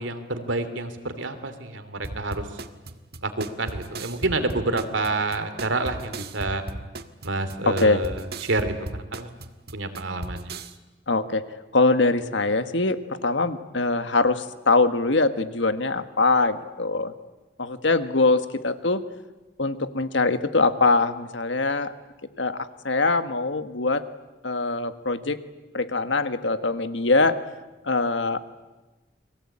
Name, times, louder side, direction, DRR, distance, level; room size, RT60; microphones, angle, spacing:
voice 1, 0.0-2.4 3.2-6.6 7.2-9.3 9.7-10.5, right 2 dB, 90° right, 9 dB, 2.9 m, -28 dB
sound 1, 2.0-10.7, right 2 dB, 55° right, 1.5 m, -36 dB
voice 2, 7.6-8.0 11.1-11.5 11.7-17.1 17.6-19.0 19.6-21.9 22.4-24.0 24.4-25.4 25.7-27.4 27.8-28.4, left 3 dB, 80° left, 10 dB, 1.6 m, -23 dB
30.0 x 22.5 x 8.7 m, 1.1 s
head